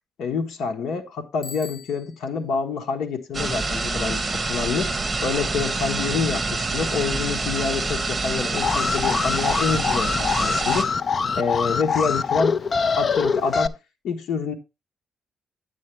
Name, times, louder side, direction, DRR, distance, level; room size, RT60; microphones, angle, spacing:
voice 1, 0.2-4.9 5.2-10.9 11.4-12.6 13.0-13.7 14.0-14.5, left 5 dB, 85° left, 1.2 m, -27 dB
Bicycle bell, 1.4-2.4, left 4 dB, 25° left, 5.2 m, -41 dB
sound 1, 3.3-10.8, right 3 dB, 20° right, 1.6 m, -26 dB
Alarm, 8.5-13.7, left 5 dB, 40° left, 0.4 m, -24 dB
9.8 x 8.3 x 3.2 m
cardioid pair, 130°, 0 cm